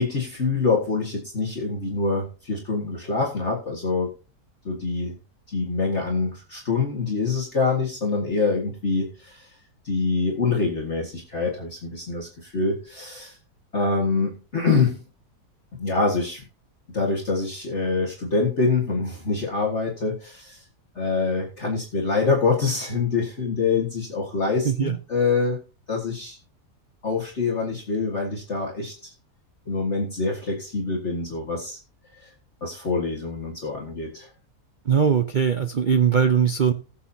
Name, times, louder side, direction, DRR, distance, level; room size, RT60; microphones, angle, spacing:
voice 1, 0.0-4.1 4.6-5.2 5.5-9.5 9.8-13.4 13.7-15.0 15.8-16.4 16.9-20.6 21.0-25.6 25.9-26.4 27.0-29.1 29.7-31.8 32.2-32.3 32.6-34.3, left 4 dB, 45° left, -1 dB, 2.1 m, -25 dB
voice 2, 34.9-36.7, right 7 dB, 75° right, 9 dB, 0.4 m, -20 dB
19.5 x 7.2 x 2.8 m, 0.34 s
omnidirectional pair, 1.8 m